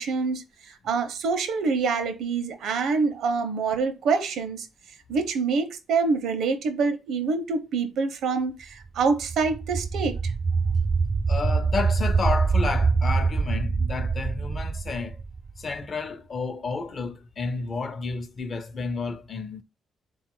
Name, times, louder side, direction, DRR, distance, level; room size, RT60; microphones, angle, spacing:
voice 1, 0.0-4.7 5.1-10.3, right 4 dB, 75° right, 0.6 m, -26 dB
sound 1, 9.0-15.8, right 4 dB, 30° right, 0.4 m, -25 dB
voice 2, 11.3-15.2 15.6-19.6, left 4 dB, 40° left, 0.6 m, -31 dB
3.6 x 2.4 x 4.4 m
cardioid pair, 90°, 0 cm